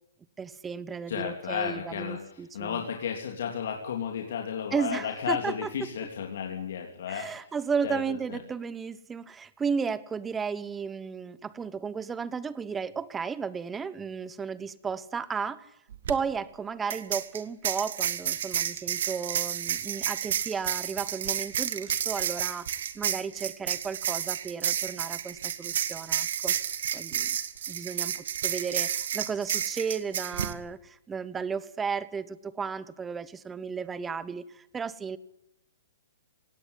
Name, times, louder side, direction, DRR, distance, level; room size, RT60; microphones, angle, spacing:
voice 1, 0.4-2.8 4.7-5.7 7.1-15.7 16.1-22.7 22.9-26.5 26.9-27.4 27.7-35.2, right 6 dB, 10° right, 17 dB, 1.0 m, -34 dB
voice 2, 1.1-7.3 7.8-8.0 8.3-8.4, left 7 dB, 65° left, 3 dB, 3.2 m, -33 dB
sound 1, 15.9-16.1 16.9-30.5, right 9 dB, 65° right, 1.9 m, -31 dB
18.5 x 17.0 x 10.0 m, 0.77 s
hypercardioid pair, 145°, 0 cm